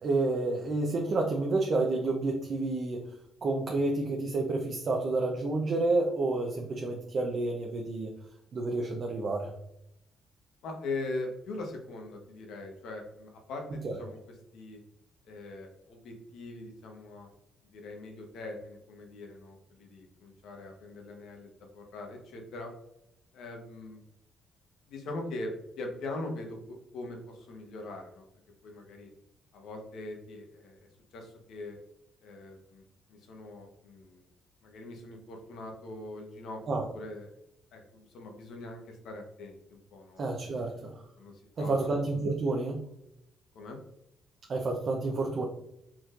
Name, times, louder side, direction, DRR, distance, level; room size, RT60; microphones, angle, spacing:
voice 1, 0.0-3.0 3.4-8.1 8.5-9.5 13.8-14.0 36.7-36.9 40.2-40.9 41.6-42.8 44.5-45.5, right 2 dB, 50° right, 1 dB, 0.7 m, -29 dB
voice 2, 10.6-14.2 14.5-14.8 15.2-17.3 17.7-22.7 23.3-24.0 24.9-25.5 25.8-28.2 28.6-29.1 29.5-30.9 31.1-31.8 32.2-32.8 33.1-34.2 34.6-36.6 36.9-37.3 37.7-40.7 41.2-41.9 43.5-43.8, left 2 dB, 80° left, 2 dB, 1.1 m, -41 dB
4.5 x 4.3 x 2.5 m, 0.81 s
cardioid pair, 90°, 0 cm